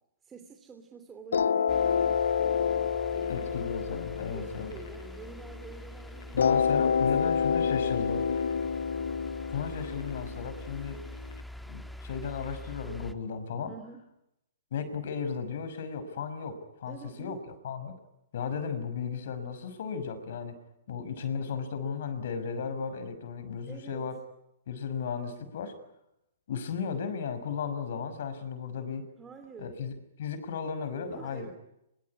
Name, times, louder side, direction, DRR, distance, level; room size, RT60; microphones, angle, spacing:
voice 1, 0.2-3.5 4.3-8.5 13.7-14.0 16.9-17.4 23.7-24.1 29.2-29.7 31.1-31.5, right 5 dB, 15° right, 4 dB, 3.1 m, -49 dB
sound 1, 1.3-5.7 6.4-11.3, left 7 dB, 75° left, 1.0 m, -28 dB
sound 2, 1.7-13.1, left 1 dB, ahead, 1.5 m, -44 dB
voice 2, 3.3-4.7 6.3-8.2 9.5-11.0 11.7-13.7 14.7-17.4 17.6-18.0 18.3-20.6 20.9-24.1 24.7-25.7 26.5-29.1 29.6-29.9 30.2-31.5, left 6 dB, 60° left, 11 dB, 6.0 m, -35 dB
24.5 x 24.0 x 10.0 m, 0.85 s
hypercardioid pair, 135°, 0 cm